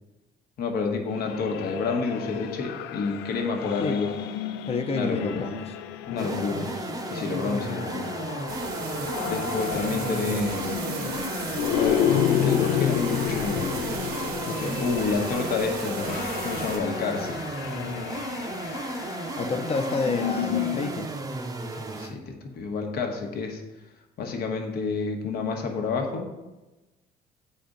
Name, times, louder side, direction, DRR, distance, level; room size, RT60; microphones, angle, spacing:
voice 1, 0.6-4.1 4.9-5.5 6.1-6.7 7.1-8.1 9.2-10.8 11.7-13.8 14.7-17.4 21.9-23.6 24.2-26.3, left 4 dB, 65° left, 3 dB, 1.1 m, -29 dB
sound 1, 1.1-21.0, left 10 dB, 85° left, 0.4 m, -31 dB
voice 2, 4.6-5.6 6.1-6.7 14.4-14.8 19.4-21.1, left 4 dB, 35° left, 6 dB, 0.7 m, -30 dB
sound 2, 6.2-22.2, right 2 dB, 20° right, 0.6 m, -34 dB
sound 3, 8.5-16.8, right 6 dB, 70° right, 0.9 m, -35 dB
8.4 x 4.2 x 3.8 m, 1.1 s
cardioid pair, 110°, 17 cm